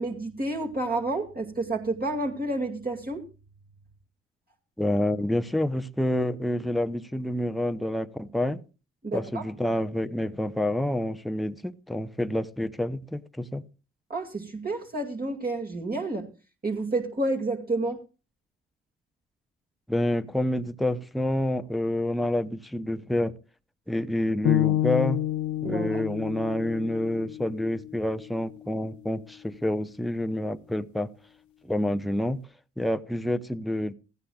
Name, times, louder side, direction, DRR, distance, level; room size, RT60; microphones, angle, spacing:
voice 1, 0.0-3.2 9.0-9.4 14.1-16.3 16.6-18.0 25.6-26.0, right 2 dB, 30° right, 0 dB, 2.3 m, -30 dB
voice 2, 4.8-8.6 9.1-13.6 19.9-23.3 23.9-25.2 25.6-31.1 31.6-32.4 32.8-33.9, left 1 dB, ahead, 11 dB, 0.9 m, -28 dB
sound 1, 24.4-28.6, left 13 dB, 65° left, 1.0 m, -29 dB
16.0 x 15.5 x 2.4 m, 0.33 s
hypercardioid pair, 45°, 31 cm